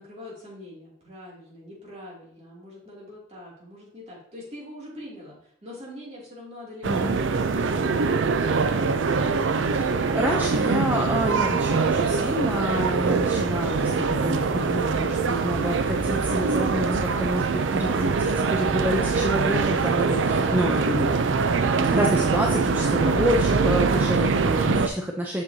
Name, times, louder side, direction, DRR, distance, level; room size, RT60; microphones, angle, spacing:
voice 1, 0.0-7.9, left 1 dB, 35° right, -5 dB, 2.6 m, -43 dB
voice 2, 6.8-7.2 9.4-21.1 21.9-25.4, equal, 10° right, 0 dB, 0.5 m, -28 dB
sound 1, 6.8-24.9, right 4 dB, 85° right, 0.5 m, -23 dB
7.4 x 6.2 x 2.7 m, 0.63 s
head